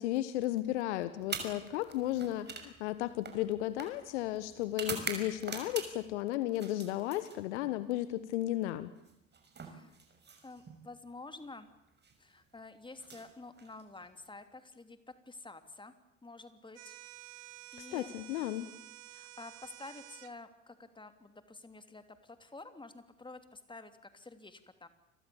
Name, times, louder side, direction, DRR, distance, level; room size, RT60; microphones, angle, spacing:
voice 1, 0.0-8.9 17.8-18.7, left 14 dB, 65° left, 14 dB, 1.4 m, -34 dB
sound 1, 1.2-6.2 6.5-7.8 9.0-10.8 11.9-12.1 12.9-14.1, right 5 dB, 25° right, 6.1 m, -44 dB
voice 2, 9.6-9.9 10.4-11.7 12.2-15.9 16.2-17.0 17.4-17.5 17.7-18.1 19.1-24.9, left 3 dB, 15° left, 9 dB, 3.1 m, -50 dB
sound 2, 16.8-20.3, right 20 dB, 65° right, 1.3 m, -51 dB
29.5 x 24.0 x 7.2 m, 0.85 s
figure-of-eight pair, 65°, 37 cm